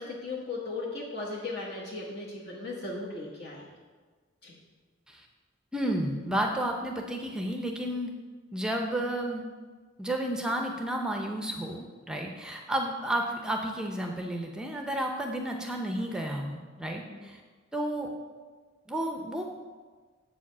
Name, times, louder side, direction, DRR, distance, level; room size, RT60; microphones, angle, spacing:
voice 1, 0.0-3.6 4.4-4.5 17.1-17.2, left 3 dB, 55° left, -4 dB, 1.2 m, -37 dB
voice 2, 5.7-8.1 8.5-9.4 10.0-17.4 17.7-18.1 18.9-19.4, right 1 dB, 5° right, 2 dB, 0.5 m, -32 dB
7.6 x 4.9 x 6.1 m, 1.4 s
head